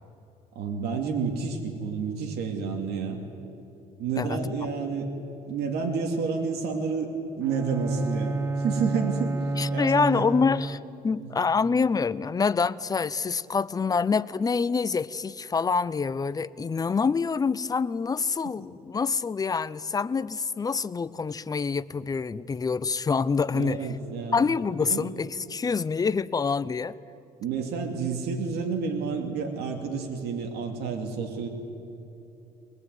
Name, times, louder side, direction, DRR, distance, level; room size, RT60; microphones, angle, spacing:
voice 1, 0.5-3.2 4.0-5.1 5.4-9.4 9.7-10.3 11.2-11.4 23.5-24.5 24.8-25.1 27.4-31.5, right 5 dB, 75° right, 2 dB, 2.7 m, -30 dB
Bowed string instrument, 7.4-11.2, right 2 dB, 15° right, 0.7 m, -30 dB
voice 2, 9.6-23.9 24.3-27.0, left 5 dB, 20° left, 16 dB, 0.6 m, -26 dB
22.0 x 20.0 x 9.4 m, 2.9 s
cardioid pair, 110°, 17 cm